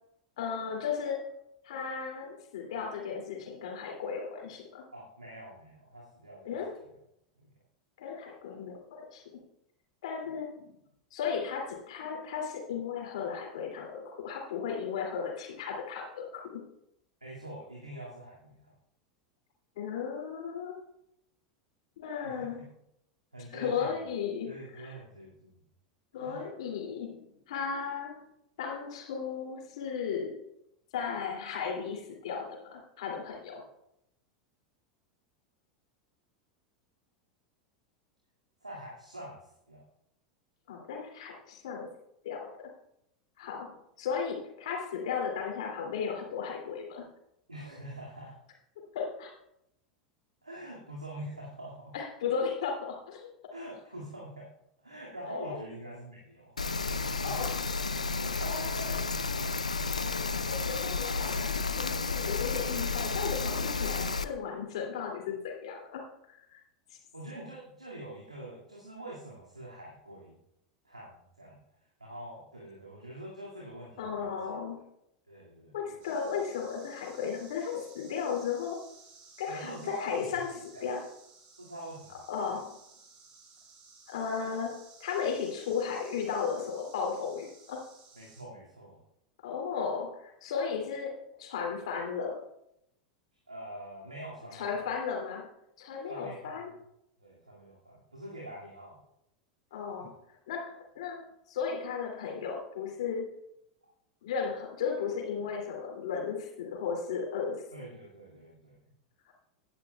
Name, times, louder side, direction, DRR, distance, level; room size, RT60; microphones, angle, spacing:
voice 1, 0.4-1.3 1.6-4.8 6.4-6.8 8.0-9.4 10.0-10.7 11.1-16.6 19.8-20.8 22.0-22.6 23.5-25.0 26.1-27.2 27.5-28.2 28.6-30.4 30.9-33.6 40.7-41.9 42.2-42.7 43.4-47.1 48.9-49.3 51.9-53.3 55.3-55.6 57.2-57.6 57.9-59.0 60.1-66.0 66.3-66.6 66.9-67.0 74.0-74.8 75.7-78.9 79.4-80.5 80.8-81.1 82.3-82.8 84.1-87.8 89.4-92.4 94.5-95.5 95.8-96.7 99.7-100.1 100.5-103.3 104.2-107.6 109.3-109.4, left 6 dB, 65° left, 0 dB, 2.6 m, -35 dB
voice 2, 4.9-6.6 7.4-7.5 17.2-18.7 22.2-22.3 23.3-24.0 24.4-25.6 26.2-26.4 38.6-39.8 47.5-48.3 50.4-51.9 53.5-54.5 54.8-56.6 56.8-57.4 58.3-59.5 67.1-70.4 70.8-71.6 72.0-74.3 75.3-75.8 79.5-80.4 80.7-80.9 81.6-82.2 88.2-89.0 93.5-94.8 96.1-96.7 97.2-99.0 100.0-100.1 107.7-108.9, right 1 dB, 90° right, -4 dB, 2.2 m, -45 dB
Rain, 56.6-64.2, left 4 dB, 85° left, 0.5 m, -32 dB
sound 1, 76.0-88.4, right 4 dB, 45° right, 4.8 m, -56 dB
16.5 x 10.0 x 2.3 m, 0.79 s
figure-of-eight pair, 85°, 4 cm